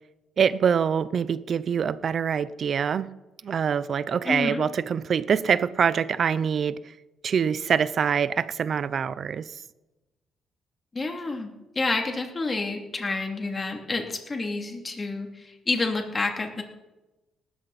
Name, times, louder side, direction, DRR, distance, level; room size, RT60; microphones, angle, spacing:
voice 1, 0.4-3.1 3.4-6.8 7.2-9.5, right 7 dB, 55° right, 0.7 m, -24 dB
voice 2, 4.2-4.6 10.9-16.6, left 3 dB, 30° left, 2.8 m, -29 dB
19.0 x 13.5 x 4.3 m
cardioid pair, 90°, 0 cm